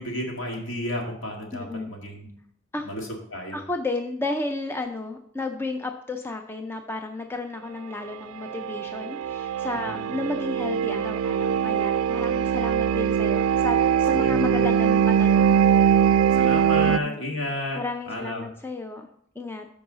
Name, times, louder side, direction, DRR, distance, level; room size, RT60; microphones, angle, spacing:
voice 1, 0.0-2.3 2.8-3.6 9.7-10.1 14.2-14.6 16.3-18.5, left 1 dB, 65° left, 0 dB, 2.0 m, -32 dB
voice 2, 1.5-1.9 2.7-2.9 3.5-15.7 16.9-17.3 17.7-19.1 19.4-19.7, left 2 dB, 10° left, 4 dB, 0.4 m, -33 dB
sound 1, 8.5-17.0, right 8 dB, 90° right, 0.3 m, -22 dB
13.5 x 4.8 x 3.9 m, 0.68 s
head